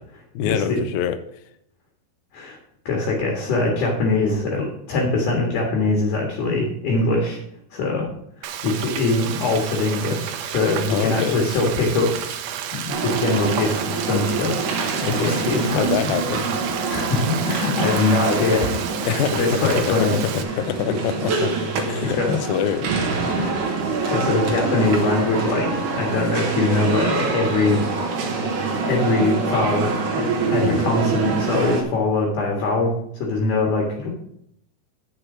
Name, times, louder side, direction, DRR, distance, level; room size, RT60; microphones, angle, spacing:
voice 1, 0.3-1.2 10.9-11.7 15.0-16.5 19.1-21.6 21.9-23.4 30.6-30.9, left 8 dB, 85° left, 11 dB, 2.5 m, -25 dB
voice 2, 2.9-7.4 7.7-8.1 8.4-12.1 12.7-15.9 16.9-20.2 22.1-22.4 23.4-23.8 24.1-27.8 28.8-34.1, left 3 dB, 60° left, 0 dB, 3.1 m, -22 dB
Frying (food), 8.4-20.4, right 10 dB, 85° right, 2.7 m, -31 dB
sound 1, 12.9-31.8, right 4 dB, 65° right, 2.5 m, -25 dB
8.8 x 6.7 x 6.2 m, 0.71 s
omnidirectional pair, 4.3 m